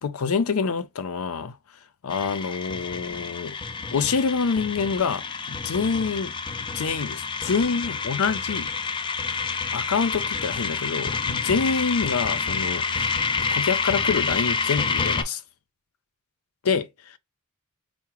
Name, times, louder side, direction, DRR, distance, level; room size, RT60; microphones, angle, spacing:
voice 1, 0.0-1.6 2.0-3.6 3.9-6.3 6.7-8.7 9.7-13.2 13.5-15.4 16.6-17.2, left 5 dB, 80° left, 0.5 m, -26 dB
sound 1, 2.1-15.2, left 5 dB, 20° left, 0.3 m, -28 dB
4.7 x 2.1 x 2.9 m
head